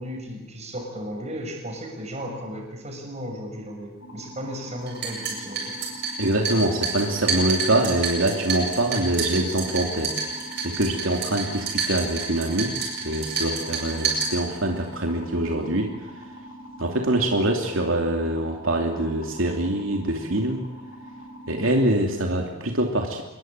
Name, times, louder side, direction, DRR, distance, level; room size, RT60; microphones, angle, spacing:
voice 1, 0.0-5.8, equal, 35° right, 2 dB, 6.7 m, -35 dB
sound 1, 4.0-21.8, equal, 90° left, 6.9 m, -43 dB
sound 2, 4.9-14.9, right 4 dB, 55° right, 8.0 m, -29 dB
voice 2, 6.2-10.1 10.6-12.8 13.0-15.9 16.8-20.6 21.5-23.2, right 1 dB, 80° right, 2 dB, 2.8 m, -24 dB
26.5 x 22.0 x 9.0 m, 1.1 s
head